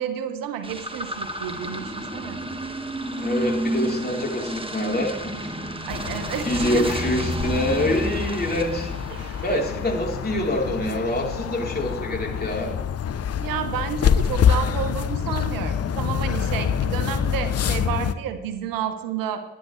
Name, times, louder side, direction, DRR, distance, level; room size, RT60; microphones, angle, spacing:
voice 1, 0.0-2.4 5.8-7.0 9.1-9.7 13.4-19.4, right 8 dB, 70° right, 10 dB, 1.1 m, -31 dB
sound 1, 0.6-10.2, right 1 dB, 15° right, 1.7 m, -31 dB
voice 2, 3.2-5.5 6.0-6.2 6.4-12.8, left 1 dB, 25° left, 0 dB, 3.7 m, -26 dB
sound 2, 5.9-18.1, left 8 dB, 45° left, 0.7 m, -26 dB
21.5 x 10.5 x 3.2 m, 1.1 s
hypercardioid pair, 40°, 35 cm